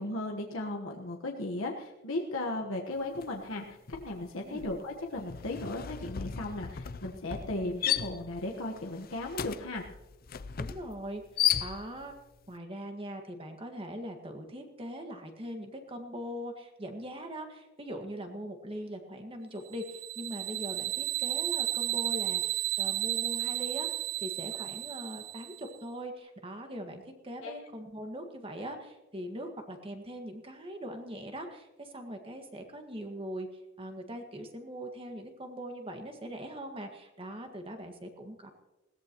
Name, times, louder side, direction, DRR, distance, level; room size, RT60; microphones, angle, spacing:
voice 1, 0.0-9.8 27.4-27.5, left 2 dB, 85° left, 0 dB, 1.4 m, -36 dB
sound 1, 3.2-3.4 3.7-12.2, left 10 dB, 45° left, 0.5 m, -35 dB
voice 2, 10.6-11.2 11.6-12.1 12.5-33.5 33.8-38.5, equal, 25° right, 4 dB, 1.8 m, -41 dB
sound 2, 19.7-25.7, right 16 dB, 70° right, 0.7 m, -33 dB
20.5 x 17.5 x 3.1 m, 1.0 s
head